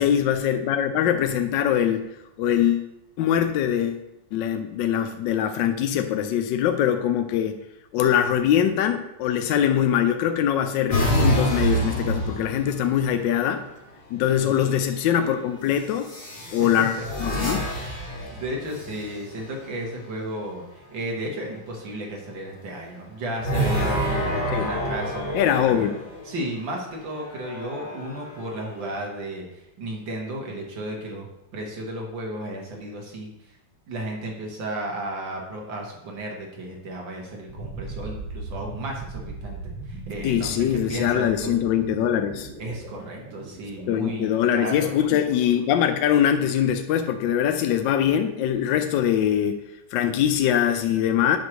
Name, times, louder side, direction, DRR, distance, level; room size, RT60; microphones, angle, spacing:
voice 1, 0.0-2.9 3.2-4.0 4.3-7.6 7.9-13.6 14.1-16.1 16.5-17.7 24.5-24.7 25.3-26.0 40.2-42.5 43.9-49.6 49.9-51.4, left 9 dB, 75° left, 7 dB, 1.2 m, -22 dB
sound 1, 10.9-13.2 14.4-14.9 16.0-19.4 23.4-26.3 27.1-28.9, right 1 dB, 30° left, 1.5 m, -28 dB
voice 2, 14.3-14.6 16.4-17.1 17.3-17.5 18.3-24.3 24.5-25.9 26.3-31.3 31.5-33.3 33.9-41.6 42.6-45.0, right 1 dB, 70° right, 0 dB, 2.0 m, -34 dB
sound 2, 37.5-46.4, right 3 dB, 45° right, 2.3 m, -39 dB
9.2 x 3.2 x 6.1 m, 0.88 s
omnidirectional pair, 2.2 m